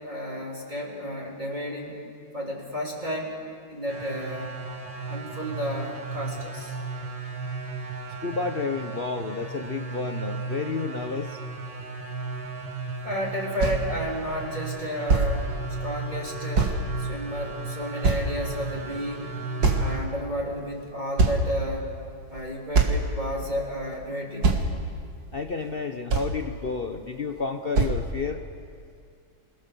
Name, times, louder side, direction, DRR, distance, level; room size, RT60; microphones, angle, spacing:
voice 1, 0.0-2.0 2.3-3.3 3.7-4.5 5.0-6.8 13.0-15.5 15.8-16.7 17.0-19.4 19.7-21.9 22.3-24.5, equal, 20° right, -3 dB, 3.6 m, -32 dB
sound 1, 3.9-20.0, right 3 dB, 70° right, 2.8 m, -35 dB
voice 2, 8.2-11.4 25.3-28.4, left 4 dB, 65° left, 6 dB, 0.5 m, -31 dB
sound 2, 13.3-13.4 13.6-13.8 14.7-14.8 15.1-15.3 16.5-16.8 17.4-17.5 18.0-18.6 19.6-20.2 20.7-20.8 21.2-21.8 22.3-22.4 22.7-23.1 23.9-24.0 24.4-24.6 25.7-25.8 26.1-26.4 27.4-27.5 27.7-28.0, right 4 dB, 50° right, 2.3 m, -22 dB
28.5 x 21.0 x 7.0 m, 2.3 s
omnidirectional pair, 2.3 m